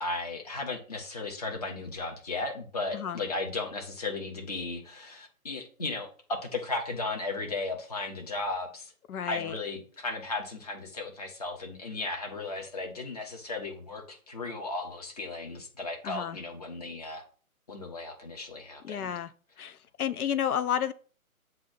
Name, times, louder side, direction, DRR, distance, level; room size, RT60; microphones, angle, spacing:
voice 1, 0.0-8.9 9.2-17.2 17.7-19.1, left 3 dB, 25° left, 2 dB, 0.8 m, -35 dB
voice 2, 9.1-9.6 16.0-16.4 18.8-19.3 19.6-20.9, left 9 dB, 85° left, 14 dB, 0.6 m, -31 dB
7.5 x 2.7 x 5.7 m, 0.42 s
hypercardioid pair, 165°, 44 cm